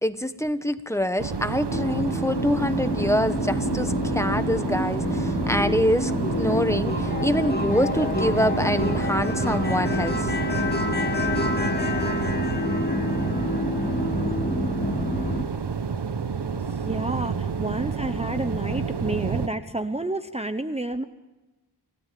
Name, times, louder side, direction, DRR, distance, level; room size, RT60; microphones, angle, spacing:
voice 1, 0.0-10.3, equal, 5° left, 10 dB, 1.3 m, -25 dB
sound 1, 1.2-19.5, right 6 dB, 80° right, 1.3 m, -30 dB
sound 2, 1.7-15.4, left 2 dB, 25° left, 2.2 m, -27 dB
voice 2, 16.5-21.0, right 2 dB, 15° right, 9 dB, 1.0 m, -30 dB
29.0 x 17.0 x 7.7 m, 1.1 s
wide cardioid pair, 75°, 40 cm